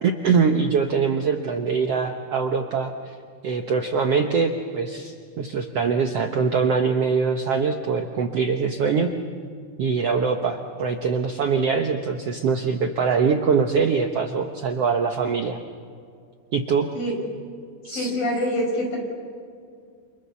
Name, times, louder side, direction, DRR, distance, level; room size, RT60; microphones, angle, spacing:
voice 1, 0.0-3.1 3.4-9.1 9.8-15.6 16.5-16.9 17.8-18.1, right 5 dB, 65° right, 4 dB, 1.5 m, -23 dB
voice 2, 17.9-19.0, equal, 70° left, 1 dB, 7.5 m, -25 dB
29.0 x 29.0 x 7.1 m, 2.2 s
omnidirectional pair, 4.2 m